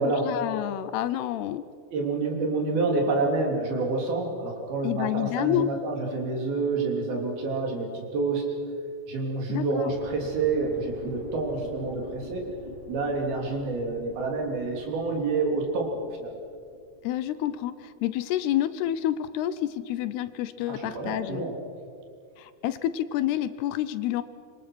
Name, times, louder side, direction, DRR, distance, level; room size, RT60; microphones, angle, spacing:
voice 1, 0.0-1.6 4.8-5.7 9.5-9.9 17.0-21.4 22.4-24.2, left 12 dB, 80° left, 14 dB, 2.7 m, -29 dB
voice 2, 1.9-8.5 9.1-12.5 12.9-16.3 20.7-21.6, right 3 dB, 65° right, 1 dB, 4.9 m, -28 dB
sound 1, 9.9-17.6 17.9-18.0, equal, 45° right, 6.1 m, -45 dB
25.5 x 24.0 x 6.2 m, 2.4 s
omnidirectional pair, 4.8 m